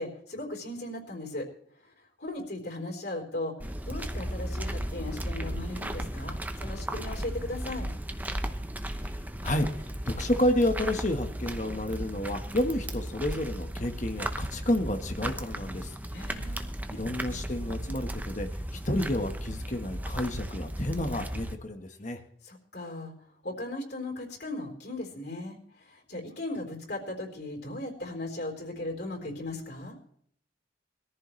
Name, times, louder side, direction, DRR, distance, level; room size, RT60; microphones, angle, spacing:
voice 1, 0.0-1.5 2.2-3.5 3.9-7.9 16.1-16.7 22.4-23.1 23.4-25.6 25.9-30.0, left 2 dB, 60° left, 0 dB, 4.0 m, -37 dB
sound 1, 3.6-21.6, right 1 dB, 10° right, 0.8 m, -35 dB
voice 2, 9.4-15.9 16.3-16.6 16.9-22.2, left 1 dB, 40° left, 5 dB, 1.4 m, -30 dB
21.0 x 14.5 x 3.2 m, 0.65 s
head